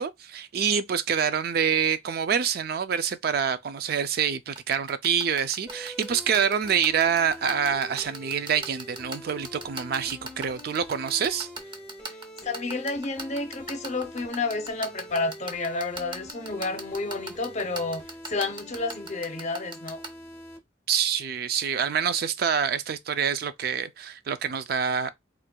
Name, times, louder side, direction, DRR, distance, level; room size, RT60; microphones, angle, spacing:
voice 1, 0.0-11.5 20.9-25.1, right 7 dB, 60° right, 0.4 m, -26 dB
sound 1, 4.6-20.1, right 2 dB, 25° right, 0.7 m, -36 dB
sound 2, 5.7-20.6, equal, 10° left, 1.1 m, -45 dB
voice 2, 12.4-20.0, left 3 dB, 40° left, 0.7 m, -30 dB
4.4 x 2.4 x 2.2 m
head